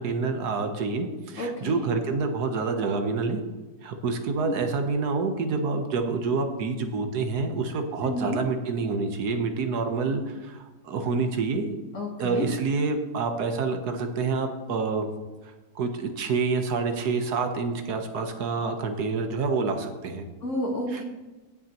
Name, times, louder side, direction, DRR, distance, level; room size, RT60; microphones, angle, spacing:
voice 1, 0.0-3.4 3.8-11.8 12.2-15.1 15.4-20.3 20.9-21.0, right 4 dB, 75° right, 6 dB, 1.5 m, -27 dB
voice 2, 1.4-1.8 8.0-8.4 11.9-12.5 20.4-21.0, left 1 dB, 50° left, 0 dB, 1.7 m, -30 dB
18.0 x 6.4 x 2.9 m, 1.2 s
omnidirectional pair, 1.7 m